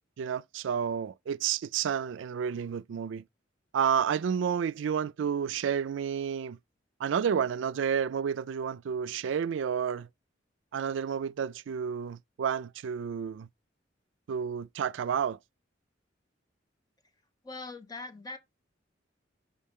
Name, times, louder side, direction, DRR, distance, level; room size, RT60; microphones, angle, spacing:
voice 1, 0.2-3.2 3.7-6.6 7.0-10.1 10.7-13.5 14.3-15.4, right 7 dB, 75° right, 0.3 m, -30 dB
voice 2, 17.4-18.4, left 3 dB, 20° left, 1.0 m, -41 dB
5.4 x 5.2 x 3.6 m
head